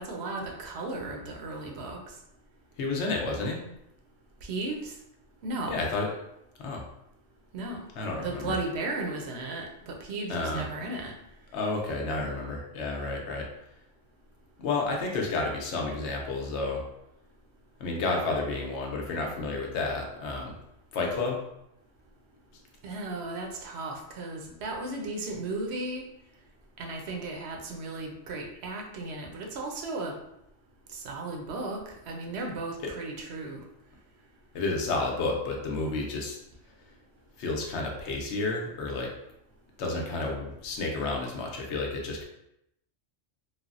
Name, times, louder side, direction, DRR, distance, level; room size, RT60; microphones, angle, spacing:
voice 1, 0.0-2.0 4.4-4.9 5.4-5.9 7.5-7.8 8.1-11.1 22.8-26.0 26.8-30.1 30.9-31.8 32.1-33.6, right 2 dB, 65° right, 1 dB, 0.8 m, -35 dB
voice 2, 2.8-3.6 5.7-6.1 6.6-6.8 8.0-8.6 10.3-10.7 11.5-13.5 14.6-16.9 17.8-20.6 20.9-21.4 32.8-32.9 34.5-36.4 37.4-39.1 39.8-42.2, left 3 dB, 70° left, 0 dB, 0.9 m, -31 dB
3.2 x 2.0 x 2.4 m, 0.80 s
omnidirectional pair, 1.3 m